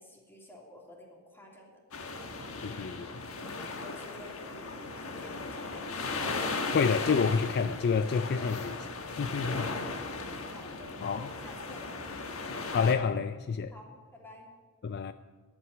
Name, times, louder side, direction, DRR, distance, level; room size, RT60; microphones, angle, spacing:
voice 1, 0.0-1.8 3.8-6.3 10.5-12.0 13.7-14.5, left 1 dB, 10° left, 2.9 m, -51 dB
sound 1, 1.9-12.9, left 3 dB, 70° left, 1.4 m, -37 dB
voice 2, 2.6-3.1 3.6-3.7 6.7-8.9 9.2-9.7 11.0-11.3 12.7-13.7 14.8-15.1, left 5 dB, 50° left, 0.4 m, -28 dB
11.0 x 8.8 x 8.7 m
head